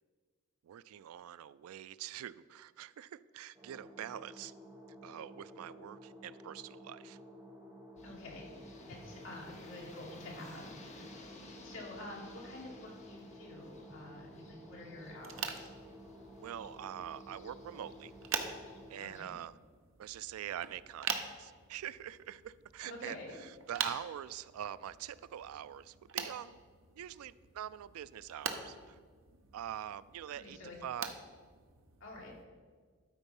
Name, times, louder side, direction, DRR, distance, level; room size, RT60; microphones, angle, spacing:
voice 1, 0.6-4.5 5.0-7.2 16.4-18.1 18.9-19.5 20.0-26.6 26.9-29.0 29.5-31.1, right 10 dB, 85° right, 18 dB, 0.3 m, -44 dB
sound 1, 3.5-18.9, equal, 20° right, 1.7 m, -53 dB
voice 2, 8.0-8.6 8.9-10.7 11.6-15.7 19.0-19.4 22.8-23.4 30.4-30.8 32.0-32.4, left 1 dB, 65° left, -2 dB, 2.3 m, -48 dB
sound 2, 8.0-19.3, left 2 dB, 30° left, 0.9 m, -56 dB
sound 3, 15.2-32.4, right 6 dB, 65° right, 0.8 m, -45 dB
12.0 x 4.5 x 5.4 m, 1.6 s
head